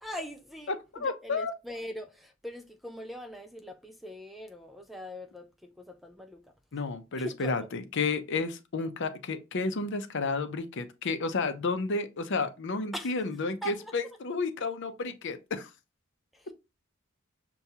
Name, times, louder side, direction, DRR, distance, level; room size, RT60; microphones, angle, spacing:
voice 1, 0.0-6.4 7.1-7.7 12.9-13.1 13.6-13.9 16.3-16.5, equal, ahead, 0.3 m, -41 dB
voice 2, 0.7-1.5 6.7-15.7, left 4 dB, 60° left, 0.6 m, -31 dB
6.7 x 2.3 x 2.8 m
head